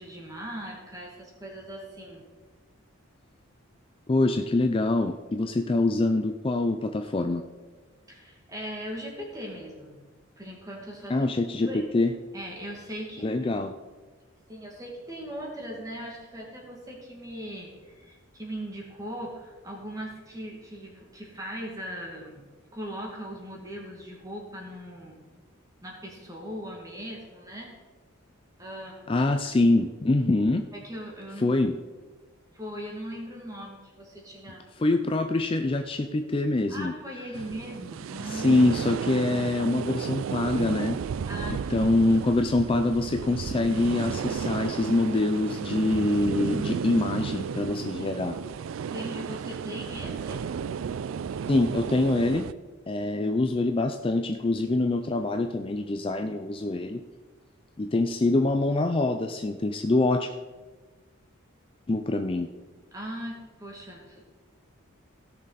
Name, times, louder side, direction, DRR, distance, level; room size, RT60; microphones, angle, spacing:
voice 1, 0.0-2.2 8.1-10.0 10.4-11.2 11.6-11.8 12.3-13.3 14.5-22.4 22.7-25.2 25.8-27.7 28.6-29.1 30.7-31.7 32.5-34.6 36.7-38.6 41.3-42.2 47.9-48.2 48.8-50.4 62.9-64.2, equal, 15° right, -1 dB, 2.2 m, -39 dB
voice 2, 4.1-7.4 11.1-12.2 13.2-13.7 29.1-30.7 31.4-31.8 34.8-36.9 38.2-41.0 41.7-48.4 51.5-52.5 52.9-57.0 57.8-60.3 61.9-62.5, left 2 dB, 25° left, 7 dB, 0.4 m, -25 dB
sound 1, 37.3-52.5, right 6 dB, 70° right, 0.3 m, -33 dB
16.5 x 6.5 x 4.1 m, 1.3 s
head